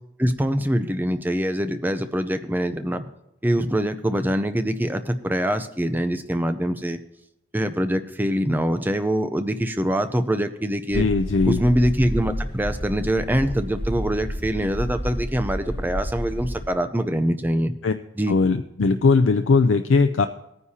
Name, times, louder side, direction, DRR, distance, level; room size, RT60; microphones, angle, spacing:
voice 1, 0.2-3.0 3.4-7.0 7.5-11.1 11.4-17.7 18.2-18.3, equal, 10° right, 9 dB, 0.5 m, -24 dB
voice 2, 10.9-11.6 17.8-17.9 18.3-20.3, left 4 dB, 70° left, 8 dB, 0.4 m, -19 dB
sound 1, 10.9-16.7, equal, 25° left, 1.5 m, -30 dB
18.0 x 9.6 x 2.8 m, 0.85 s
head